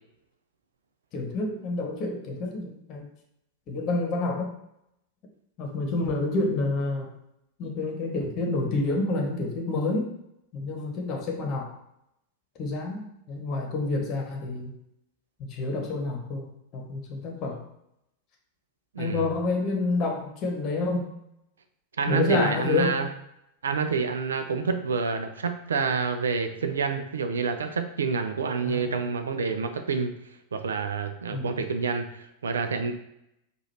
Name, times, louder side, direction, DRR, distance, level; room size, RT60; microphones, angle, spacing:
voice 1, 1.1-3.0 3.7-4.5 5.6-7.1 7.6-10.1 10.5-11.7 12.6-14.7 15.5-16.5 16.7-17.6 19.0-21.1 22.1-23.0 28.6-29.0 31.3-31.6, left 3 dB, 35° left, 1 dB, 1.0 m, -28 dB
voice 2, 18.9-19.3 22.0-23.1 23.6-30.2 30.5-32.9, right 5 dB, 70° right, 7 dB, 0.5 m, -28 dB
4.9 x 2.5 x 4.3 m, 0.80 s
figure-of-eight pair, 90°, 0 cm